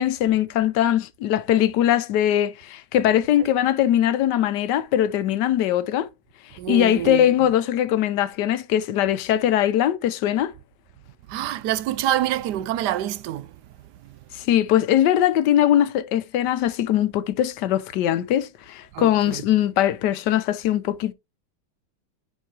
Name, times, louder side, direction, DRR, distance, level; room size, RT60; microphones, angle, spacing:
voice 1, 0.0-6.1 6.7-10.5 14.3-21.1, left 11 dB, 85° left, 1.3 m, -21 dB
voice 2, 6.6-7.5 11.3-13.5 18.9-19.4, right 12 dB, 85° right, 1.2 m, -27 dB
9.3 x 4.6 x 2.9 m
omnidirectional pair, 1.8 m